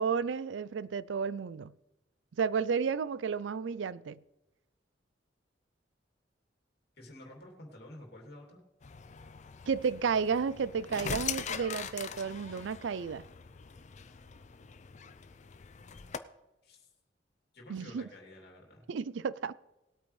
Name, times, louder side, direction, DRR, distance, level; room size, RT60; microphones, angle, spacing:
voice 1, 0.0-1.7 2.4-4.2 9.7-13.2 17.7-18.1 18.9-19.5, right 6 dB, 85° right, 0.4 m, -32 dB
voice 2, 7.0-8.6 16.6-16.9 17.5-18.8, left 1 dB, 60° left, 2.8 m, -50 dB
sound 1, 8.8-16.2, left 7 dB, 40° left, 0.5 m, -42 dB
19.5 x 8.6 x 3.2 m
head